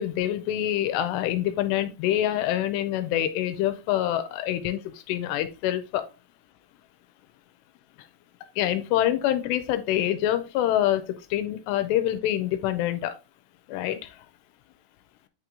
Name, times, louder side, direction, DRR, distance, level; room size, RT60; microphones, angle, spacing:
voice 1, 0.0-6.0 8.6-13.2 13.7-14.2, left 12 dB, 85° left, 10 dB, 2.8 m, -26 dB
8.5 x 3.0 x 3.7 m, 0.29 s
omnidirectional pair, 5.0 m